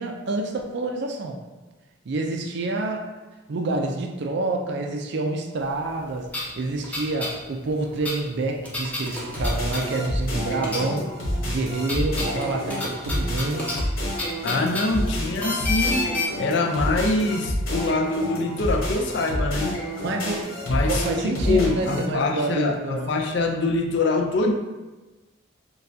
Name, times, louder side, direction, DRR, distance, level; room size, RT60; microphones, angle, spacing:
voice 1, 0.0-1.4 2.1-3.1 3.5-11.1 11.5-13.7 20.0-20.5 20.9-23.2, right 2 dB, 55° right, 3 dB, 0.4 m, -28 dB
sound 1, 5.9-6.0 6.3-10.3 10.6-11.2 11.5-16.3, left 2 dB, 5° left, 0.6 m, -30 dB
sound 2, 9.1-22.0, equal, 80° left, 1.4 m, -28 dB
voice 2, 14.4-16.1 16.4-19.8 20.7-24.5, left 3 dB, 60° left, 3 dB, 0.5 m, -24 dB
6.4 x 2.3 x 2.7 m, 1.2 s
head